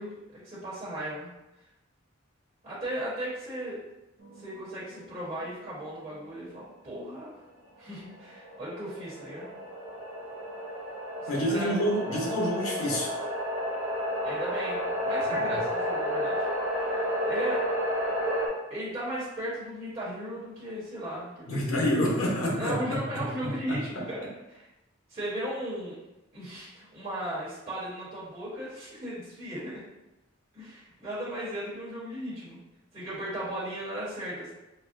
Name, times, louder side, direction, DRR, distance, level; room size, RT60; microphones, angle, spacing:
voice 1, 0.0-1.4 2.6-3.8 4.4-7.3 7.8-9.5 11.2-11.7 14.2-16.5 16.7-17.6 18.7-21.9 22.5-24.7 25.1-25.9 26.3-29.8 30.5-32.6 32.9-34.5, right 1 dB, 35° right, -10 dB, 1.2 m, -36 dB
sound 1, 4.2-6.8 7.1-7.2 7.9-18.5, equal, 75° right, 0.8 m, -32 dB
voice 2, 11.3-13.1 15.3-15.4 21.5-23.0 23.7-24.0, equal, 85° left, -3 dB, 0.9 m, -28 dB
4.0 x 2.2 x 2.6 m, 0.96 s
head